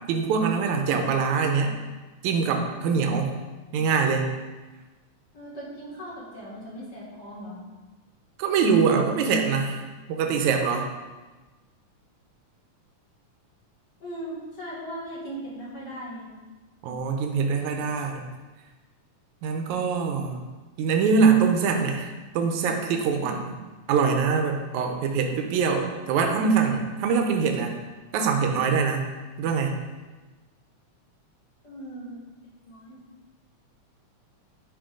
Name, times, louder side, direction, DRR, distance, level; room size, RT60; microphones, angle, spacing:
voice 1, 0.1-1.8 2.2-3.4 3.7-4.3 8.4-9.8 10.1-10.9 16.8-18.3 19.4-20.4 20.8-23.5 23.9-27.7 28.1-29.1 29.4-29.8, right 5 dB, 80° right, 4 dB, 2.2 m, -23 dB
voice 2, 5.3-7.6 14.0-16.3 31.6-32.2 32.6-33.0, right 1 dB, 35° left, -6 dB, 2.5 m, -38 dB
11.5 x 5.0 x 3.8 m, 1.2 s
omnidirectional pair, 3.4 m